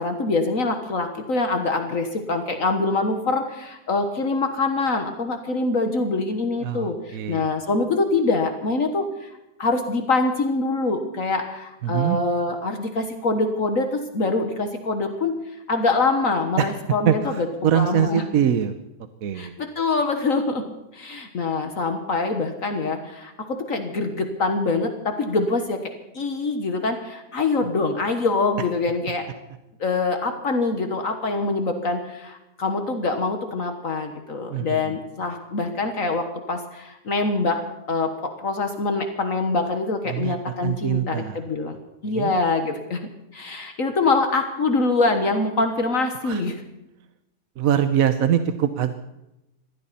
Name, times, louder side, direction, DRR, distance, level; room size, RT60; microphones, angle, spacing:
voice 1, 0.0-9.3 9.6-15.3 15.7-17.5 17.7-18.2 19.3-20.7 20.9-29.3 29.8-37.6 37.9-41.8 42.0-43.0 43.3-46.6, left 3 dB, 60° left, 6 dB, 1.8 m, -24 dB
voice 2, 6.6-7.5 11.8-12.2 16.6-16.7 17.1-18.7 19.2-19.5 34.5-34.8 40.1-40.3 40.6-41.4 42.1-42.3 46.2-46.4 47.6-48.9, right 9 dB, 65° right, 10 dB, 1.2 m, -23 dB
21.5 x 15.5 x 4.3 m, 0.91 s
omnidirectional pair, 1.7 m